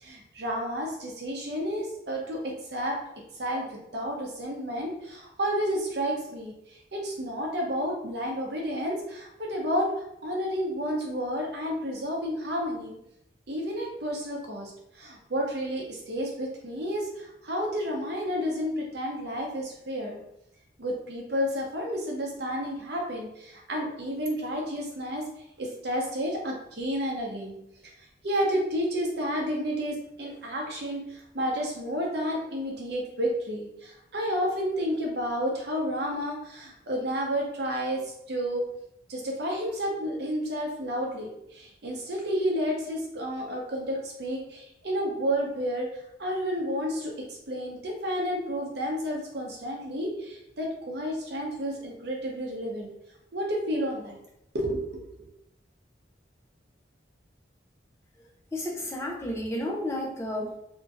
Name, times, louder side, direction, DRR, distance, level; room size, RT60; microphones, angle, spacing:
voice 1, 0.0-3.0 3.4-3.7 3.9-6.5 6.9-9.9 10.2-12.9 13.5-20.2 20.8-25.2 25.6-27.6 28.2-38.0 38.3-38.6 39.1-45.9 46.2-47.1 47.5-52.9 53.3-54.2 54.5-55.0, equal, 65° right, -1 dB, 0.7 m, -31 dB
voice 2, 58.5-60.6, left 1 dB, 15° left, -1 dB, 0.4 m, -32 dB
2.9 x 2.6 x 2.5 m, 0.79 s
head